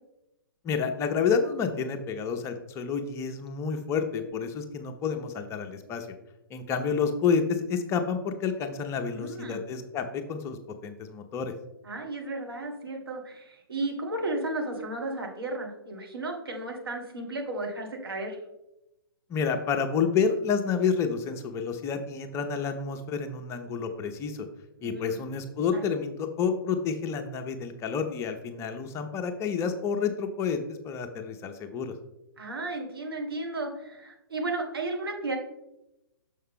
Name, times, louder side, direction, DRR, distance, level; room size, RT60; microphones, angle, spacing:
voice 1, 0.6-6.1 6.5-10.6 10.8-11.5 19.3-24.5 24.8-31.9, left 6 dB, 20° left, 6 dB, 0.6 m, -29 dB
voice 2, 9.1-9.6 11.8-18.4 24.8-25.2 25.7-25.9 32.4-35.4, right 2 dB, 80° right, 2 dB, 1.6 m, -34 dB
6.6 x 5.5 x 3.7 m, 0.91 s
figure-of-eight pair, 120°, 12 cm